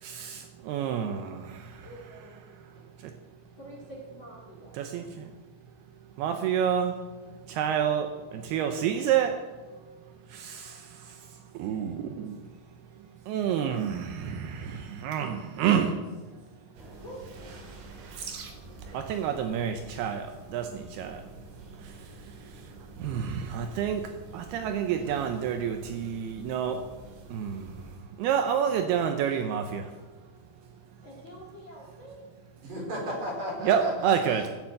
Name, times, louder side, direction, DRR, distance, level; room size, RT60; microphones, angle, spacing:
voice 1, 0.0-1.9 2.5-3.1 4.7-5.3 6.2-7.0 7.4-9.4 10.3-12.5 13.0-16.0 18.1-18.5 18.9-21.2 21.7-26.8 27.3-30.0 33.6-34.5, right 8 dB, 85° right, 6 dB, 2.3 m, -29 dB
voice 2, 1.8-2.4 3.6-4.8 8.6-9.1 16.8-17.3 31.0-32.2, equal, 35° left, -4 dB, 2.3 m, -46 dB
sound 1, 16.8-28.0, right 2 dB, 65° right, 3.7 m, -47 dB
voice 3, 32.6-34.5, equal, 45° right, -2 dB, 5.4 m, -35 dB
16.5 x 7.3 x 7.8 m, 1.3 s
omnidirectional pair, 5.7 m